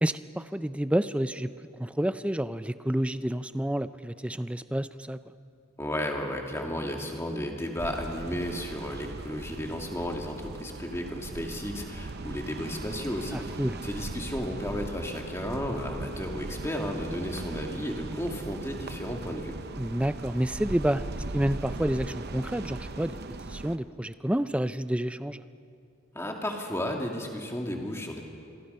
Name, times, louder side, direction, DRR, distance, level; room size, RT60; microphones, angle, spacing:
voice 1, 0.0-1.5 1.8-5.2 13.3-13.8 19.8-23.2 23.5-25.4, right 1 dB, 5° right, 13 dB, 0.4 m, -29 dB
voice 2, 5.8-19.6 26.1-28.2, equal, 15° left, 1 dB, 2.2 m, -33 dB
sound 1, 7.8-23.8, right 2 dB, 50° right, 0.8 m, -39 dB
27.5 x 22.0 x 5.6 m, 2.5 s
head